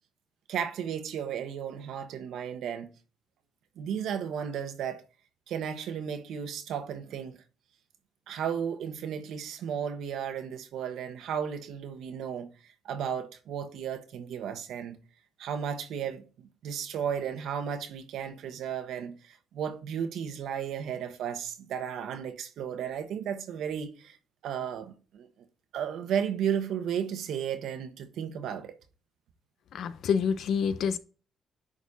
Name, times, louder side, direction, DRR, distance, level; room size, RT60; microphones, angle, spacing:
voice 1, 0.5-2.9 3.8-5.0 5.5-7.4 8.3-12.5 12.8-15.0 15.4-24.2 24.4-25.3 25.7-28.7, right 8 dB, 80° right, 1.3 m, -34 dB
voice 2, 29.7-31.0, left 6 dB, 70° left, 0.7 m, -27 dB
10.0 x 4.2 x 4.1 m
cardioid pair, 90°, 0 cm